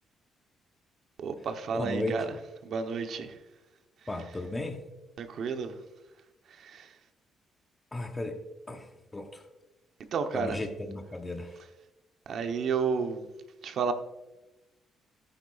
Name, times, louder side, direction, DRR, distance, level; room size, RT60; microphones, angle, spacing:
voice 1, 1.2-2.3 2.6-3.3 5.2-5.7 6.6-6.9 10.1-10.6 12.3-13.2 13.6-13.9, right 5 dB, 65° right, 1.0 m, -31 dB
voice 2, 1.7-2.2 4.1-4.8 7.9-8.4 8.7-8.9 9.1-9.4 10.3-11.6, left 1 dB, 20° left, 1.0 m, -34 dB
13.5 x 9.0 x 2.5 m
cardioid pair, 90°, 0 cm